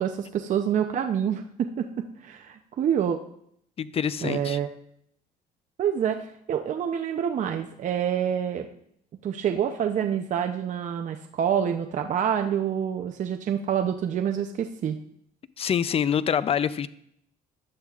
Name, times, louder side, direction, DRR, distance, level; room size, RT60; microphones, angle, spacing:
voice 1, 0.0-3.2 4.2-4.7 5.8-8.7 9.2-15.0, right 8 dB, 45° right, 5 dB, 0.6 m, -27 dB
voice 2, 3.8-4.6 15.6-16.9, left 8 dB, 35° left, 16 dB, 0.5 m, -25 dB
15.0 x 10.5 x 2.4 m, 0.71 s
cardioid pair, 110°, 17 cm